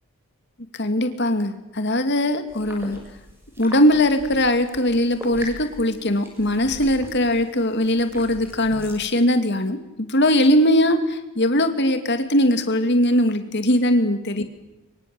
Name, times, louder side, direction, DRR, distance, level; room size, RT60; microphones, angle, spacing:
voice 1, 0.8-3.0 3.6-14.4, left 1 dB, 50° left, 7 dB, 2.6 m, -20 dB
sound 1, 2.5-9.1, equal, 10° right, 6.7 m, -40 dB
24.5 x 23.5 x 7.9 m, 1.0 s
head